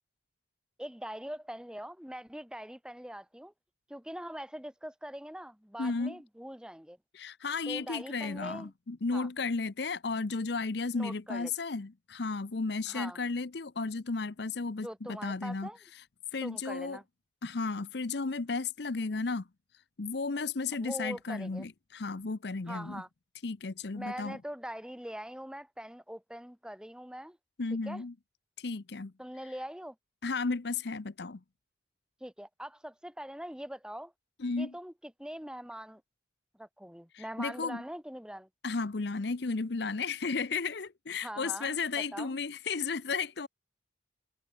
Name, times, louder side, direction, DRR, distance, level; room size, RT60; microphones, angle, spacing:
voice 1, 0.8-3.5 3.9-7.0 7.7-8.7 9.1-9.3 10.9-11.5 12.9-13.2 14.8-15.8 16.4-17.0 20.8-21.7 22.7-23.1 23.9-27.4 27.8-28.0 29.2-29.9 32.2-34.1 34.6-36.0 36.6-38.5 41.2-42.4, equal, 5° right, 1.4 m, -42 dB
voice 2, 5.8-6.2 7.1-15.7 16.3-17.0 17.4-19.5 20.0-23.0 23.4-24.4 27.6-28.1 28.6-29.1 30.2-31.4 34.4-34.7 37.1-37.8 38.6-43.5, left 4 dB, 60° left, 0.7 m, -34 dB
head